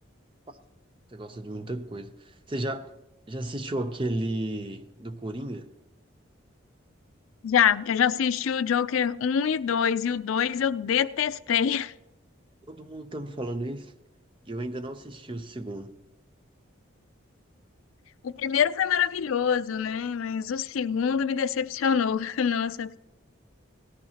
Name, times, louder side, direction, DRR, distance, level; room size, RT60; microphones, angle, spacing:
voice 1, 1.1-3.0 3.3-5.7 12.7-13.9 14.5-16.0, right 1 dB, 25° right, 0.6 m, -34 dB
voice 2, 7.4-11.9 18.2-23.0, left 7 dB, 85° left, 0.4 m, -25 dB
18.0 x 13.5 x 2.9 m
head